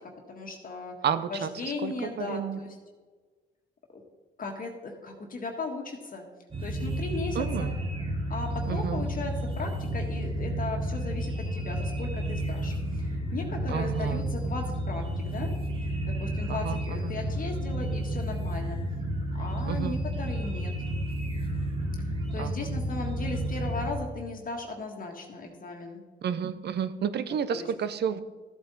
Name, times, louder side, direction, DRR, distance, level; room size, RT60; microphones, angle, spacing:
voice 1, 0.3-0.9 1.3-2.7 3.9-4.0 4.4-6.2 6.6-7.4 8.3-15.5 16.1-18.8 19.4-20.7 22.3-26.0 27.5-27.7, left 3 dB, 45° left, 2 dB, 1.6 m, -37 dB
voice 2, 1.0-2.6 7.3-7.8 8.7-9.0 13.7-14.2 16.5-17.1 19.7-20.0 22.4-22.7 26.2-28.2, right 8 dB, 60° right, 13 dB, 0.7 m, -31 dB
sound 1, 6.5-23.9, right 1 dB, 25° right, 1.8 m, -31 dB
13.0 x 8.1 x 4.1 m, 1.4 s
cardioid pair, 90°, 20 cm